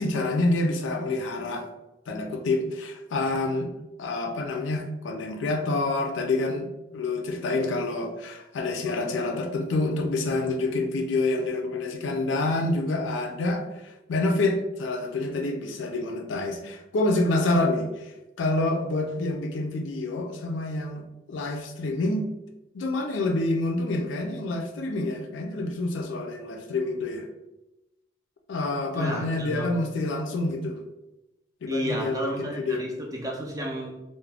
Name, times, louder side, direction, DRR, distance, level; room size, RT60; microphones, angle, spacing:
voice 1, 0.0-1.7 2.1-3.7 4.0-18.1 18.4-22.3 22.7-27.3 28.5-30.8 31.6-32.9, left 2 dB, 80° left, 4 dB, 0.4 m, -27 dB
voice 2, 28.9-29.7 31.7-34.0, equal, 20° right, 0 dB, 0.4 m, -32 dB
2.4 x 2.1 x 3.2 m, 0.97 s
head